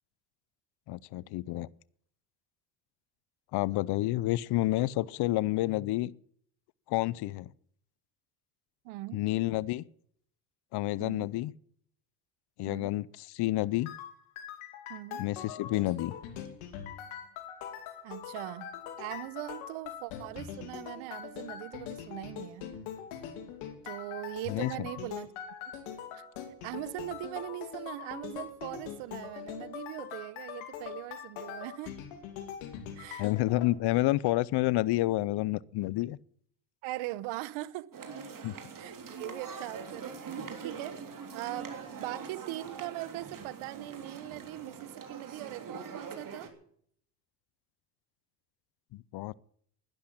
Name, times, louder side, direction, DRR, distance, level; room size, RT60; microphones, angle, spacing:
voice 1, 0.9-1.7 3.5-6.1 6.9-7.5 9.1-9.8 10.7-11.5 12.6-13.9 15.2-16.1 24.5-24.9 33.2-36.2 38.4-38.5 48.9-49.3, left 17 dB, 55° left, 0.6 m, -29 dB
voice 2, 8.8-9.2 11.0-11.3 12.6-12.9 14.9-15.3 18.0-18.7 19.0-22.7 23.8-25.3 26.1-26.2 26.6-32.0 33.0-33.3 36.8-37.9 38.7-40.2 40.6-41.0 41.3-46.5, right 18 dB, 75° right, 1.0 m, -40 dB
sound 1, 13.9-33.7, left 9 dB, 75° left, 2.9 m, -42 dB
sound 2, 37.9-46.5, right 5 dB, 40° right, 3.3 m, -43 dB
12.0 x 10.5 x 9.9 m
supercardioid pair, 95°, 49 cm